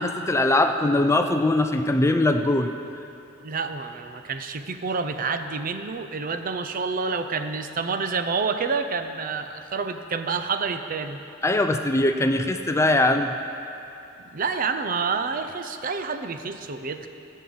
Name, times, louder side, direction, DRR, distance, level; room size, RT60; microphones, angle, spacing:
voice 1, 0.0-2.7 11.4-13.4, left 2 dB, 15° left, 7 dB, 0.4 m, -21 dB
voice 2, 3.4-11.2 14.3-17.1, right 4 dB, 45° right, 8 dB, 0.5 m, -28 dB
15.0 x 5.5 x 7.8 m, 2.8 s
head